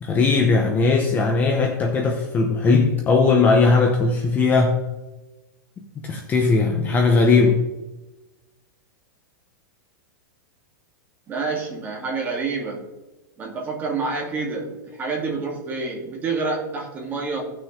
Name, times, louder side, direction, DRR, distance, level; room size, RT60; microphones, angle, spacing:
voice 1, 0.0-4.8 6.0-7.6, left 4 dB, 15° left, 2 dB, 0.9 m, -18 dB
voice 2, 11.3-12.8 13.4-17.4, right 4 dB, 20° right, -1 dB, 2.2 m, -28 dB
16.5 x 6.3 x 3.3 m, 1.1 s
supercardioid pair, 160°, 10 cm